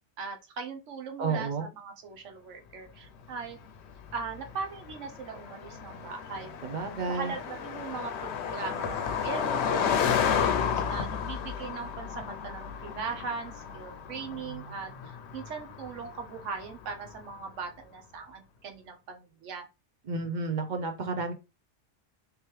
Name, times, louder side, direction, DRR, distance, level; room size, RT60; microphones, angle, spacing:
voice 1, 0.0-3.6 4.1-6.5 7.1-19.7, right 5 dB, 80° right, 4 dB, 1.1 m, -40 dB
voice 2, 1.2-1.7 6.6-7.3 20.1-21.3, right 4 dB, 50° right, 6 dB, 0.7 m, -31 dB
Car passing by, 3.5-17.2, left 7 dB, 70° left, 0.8 m, -32 dB
3.5 x 3.0 x 3.1 m, 0.28 s
omnidirectional pair, 1.2 m